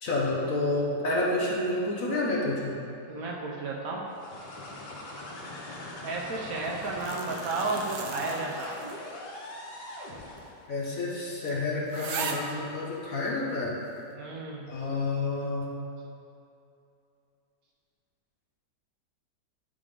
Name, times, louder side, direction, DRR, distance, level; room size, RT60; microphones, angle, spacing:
voice 1, 0.0-2.8 10.7-13.8 14.7-15.7, left 2 dB, 55° left, -4 dB, 1.4 m, -29 dB
voice 2, 3.1-4.0 6.0-8.7 14.1-14.6, right 3 dB, 65° right, -2 dB, 1.0 m, -32 dB
sound 1, 4.1-10.6, left 1 dB, 80° left, 1.6 m, -41 dB
sound 2, 6.7-9.1 9.5-9.6 10.4-10.5 10.9-11.0 11.5-11.6 11.9-12.6 13.3-13.4, right 5 dB, 80° right, 0.6 m, -38 dB
11.0 x 3.7 x 3.4 m, 2.7 s
omnidirectional pair, 1.8 m